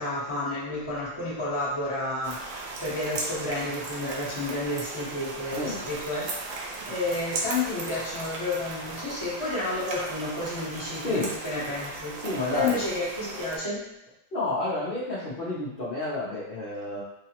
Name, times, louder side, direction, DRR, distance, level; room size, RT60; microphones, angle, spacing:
voice 1, 0.0-6.3 6.5-12.2 12.5-13.8, left 2 dB, 20° left, -8 dB, 1.1 m, -31 dB
sound 1, 2.2-13.6, right 3 dB, 75° right, 1.2 m, -37 dB
voice 2, 12.2-12.8 14.3-17.0, left 2 dB, 40° left, -10 dB, 0.9 m, -30 dB
4.8 x 2.4 x 2.9 m, 0.86 s
omnidirectional pair, 1.9 m